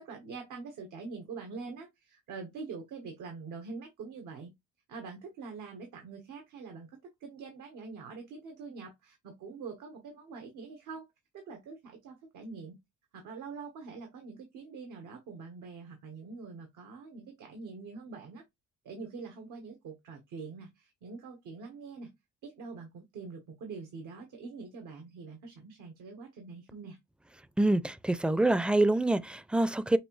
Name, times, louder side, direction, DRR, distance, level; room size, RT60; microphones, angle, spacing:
voice 1, 0.0-4.5 4.9-11.1 11.3-12.8 13.1-18.4 18.8-22.1 22.4-27.0, right 4 dB, 90° right, 1.4 m, -44 dB
voice 2, 27.6-30.0, right 2 dB, 5° right, 0.4 m, -26 dB
6.4 x 2.6 x 3.2 m
cardioid pair, 90°, 30 cm